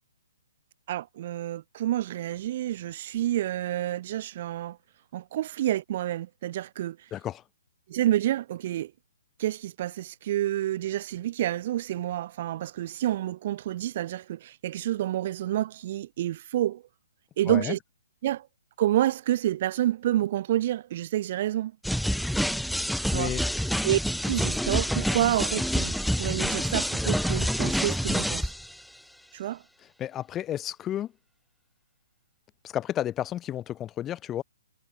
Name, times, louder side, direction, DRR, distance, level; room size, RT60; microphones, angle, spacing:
voice 1, 0.9-4.8 5.1-7.0 7.9-8.9 9.4-16.8 17.4-17.8 18.2-18.5 18.8-21.7 23.1-23.3 23.8-24.0 24.3-28.5 29.3-29.6, right 13 dB, 45° right, 1.3 m, -28 dB
voice 2, 7.1-7.4 17.5-17.7 23.1-23.4 30.0-31.1 32.6-34.4, left 11 dB, 15° left, 4.0 m, -32 dB
sound 1, 21.8-28.7, equal, ahead, 2.1 m, -27 dB
hypercardioid pair, 145°, 0 cm